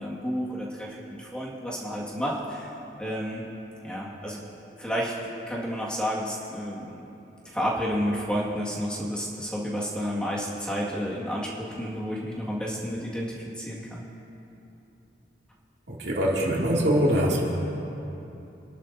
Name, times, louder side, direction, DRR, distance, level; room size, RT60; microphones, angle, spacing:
voice 1, 0.0-3.5 3.8-4.4 4.8-7.1 7.4-14.0, equal, 5° left, -6 dB, 1.9 m, -31 dB
voice 2, 15.9-17.4, equal, 80° right, -4 dB, 2.5 m, -23 dB
26.5 x 11.5 x 2.7 m, 2.9 s
head